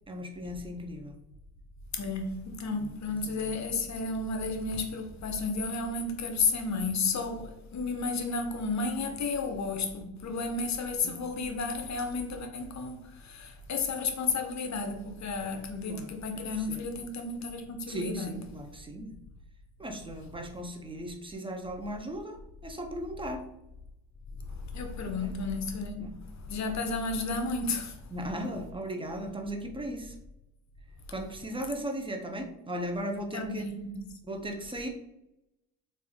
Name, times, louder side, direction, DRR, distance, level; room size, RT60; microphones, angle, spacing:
voice 1, 0.1-1.2 2.7-3.5 11.0-11.2 15.8-16.8 17.9-19.1 19.8-23.5 25.2-25.4 26.0-26.1 28.1-30.1 31.1-33.7 34.3-34.9, equal, 10° right, 0.6 m, -37 dB
voice 2, 1.9-18.3 24.7-26.1 26.5-28.0 33.3-34.0, left 3 dB, 40° left, 0.7 m, -32 dB
3.3 x 2.6 x 3.4 m
supercardioid pair, 85°, 43 cm